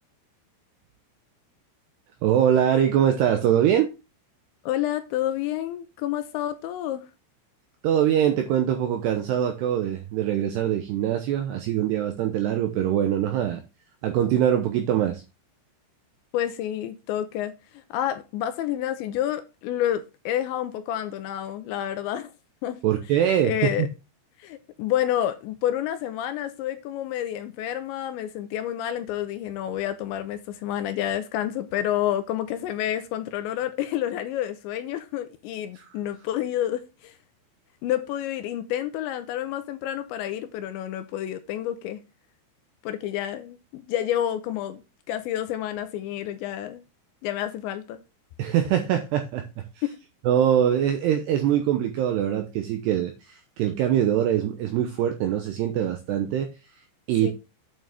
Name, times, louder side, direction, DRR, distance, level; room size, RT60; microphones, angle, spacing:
voice 1, 2.2-3.9 7.8-13.6 14.0-15.2 22.8-23.9 35.8-35.9 48.4-49.4 50.3-56.5 57.1-57.3, right 10 dB, 80° right, 2.4 m, -23 dB
voice 2, 4.6-7.1 16.3-22.3 22.6-22.8 23.4-23.9 24.4-37.2 37.8-42.0 42.8-44.8 45.1-46.9 47.2-48.0 49.8-49.9 57.2-57.3, left 11 dB, 80° left, 2.8 m, -29 dB
8.9 x 6.4 x 3.5 m
omnidirectional pair, 5.8 m